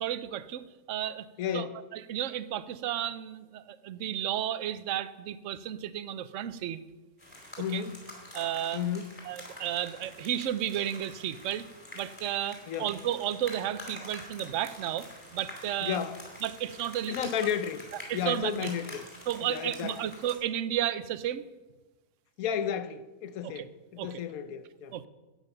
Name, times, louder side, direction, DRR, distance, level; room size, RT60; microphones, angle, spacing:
voice 1, 0.0-1.3 1.5-1.7 1.9-6.8 7.7-7.8 8.3-8.8 9.2-11.7 11.9-15.1 15.3-16.0 16.4-17.2 18.1-18.7 19.3-21.5 23.4-23.7 24.0-24.2 24.9-25.1, right 11 dB, 60° right, 0.9 m, -33 dB
voice 2, 1.4-1.8 7.6-8.0 8.7-9.1 12.7-12.9 15.8-16.2 17.1-17.9 18.1-19.0 19.5-20.0 22.4-23.7 24.0-25.0, left 8 dB, 65° left, 1.2 m, -32 dB
sound 1, 7.2-20.3, left 1 dB, 15° left, 4.1 m, -47 dB
12.5 x 9.2 x 6.6 m
omnidirectional pair, 1.7 m